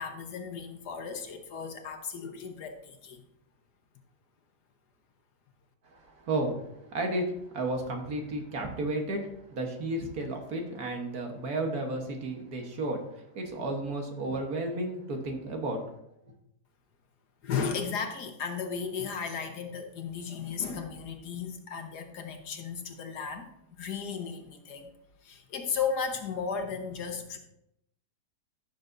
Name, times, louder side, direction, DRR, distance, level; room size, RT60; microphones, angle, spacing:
voice 1, 0.0-3.2 17.4-23.5 23.8-24.9 25.2-27.4, left 6 dB, 70° left, 5 dB, 1.6 m, -35 dB
voice 2, 5.8-7.3 7.5-15.8, right 2 dB, 60° right, 3 dB, 1.7 m, -33 dB
14.5 x 6.7 x 2.6 m, 0.79 s
omnidirectional pair, 1.9 m